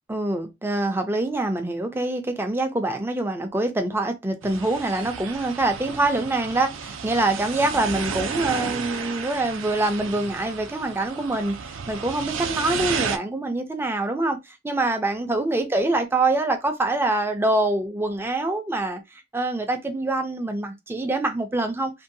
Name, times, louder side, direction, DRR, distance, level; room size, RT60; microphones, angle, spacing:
voice 1, 0.1-21.9, right 2 dB, 10° right, 0.4 m, -25 dB
sound 1, 4.4-13.2, right 6 dB, 80° right, 0.4 m, -32 dB
2.6 x 2.2 x 2.6 m
head